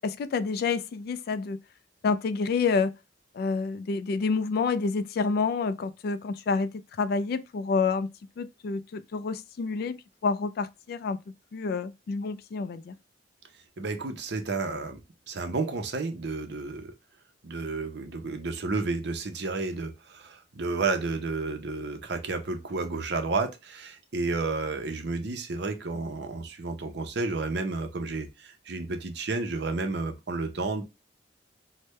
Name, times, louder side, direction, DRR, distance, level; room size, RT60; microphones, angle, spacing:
voice 1, 0.0-1.6 2.0-2.9 3.3-6.7 7.0-8.1 8.4-11.2 11.5-13.0, left 4 dB, 55° left, 0.3 m, -28 dB
voice 2, 13.8-15.0 15.3-16.9 17.4-30.8, right 3 dB, 65° right, 0.6 m, -31 dB
3.3 x 2.1 x 3.1 m
head